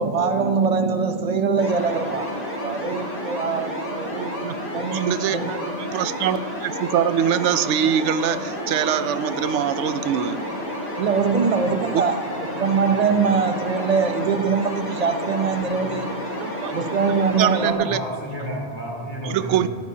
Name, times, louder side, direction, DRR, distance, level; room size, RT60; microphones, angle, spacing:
voice 1, 0.0-4.3 4.7-5.5 11.0-12.2 12.5-16.1 16.7-17.9, right 5 dB, 40° right, 0.7 m, -23 dB
sound 1, 1.6-17.7, equal, 65° left, 3.3 m, -30 dB
voice 2, 4.9-10.5 11.9-12.0 16.4-16.8 17.1-18.0 19.2-19.7, right 9 dB, 90° right, 0.9 m, -24 dB
voice 3, 17.8-19.7, equal, 20° left, 3.3 m, -31 dB
18.5 x 14.0 x 2.8 m
omnidirectional pair, 1.2 m